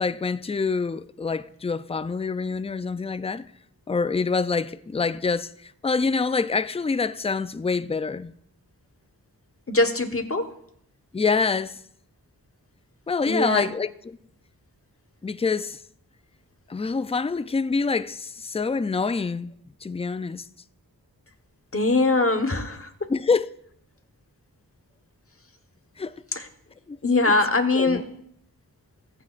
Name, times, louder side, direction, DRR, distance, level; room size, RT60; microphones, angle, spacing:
voice 1, 0.0-3.5 3.9-8.3 11.1-11.8 13.1-14.2 15.2-15.8 16.7-19.5 19.8-20.4 23.1-23.5 26.0-26.1 26.9-27.0 27.7-28.0, left 4 dB, 15° left, 0.4 m, -26 dB
voice 2, 9.7-10.5 13.3-13.7 21.7-23.1 26.3-26.5 27.0-28.0, left 2 dB, 35° left, 1.2 m, -22 dB
23.0 x 9.5 x 2.5 m
wide cardioid pair, 75°, 37 cm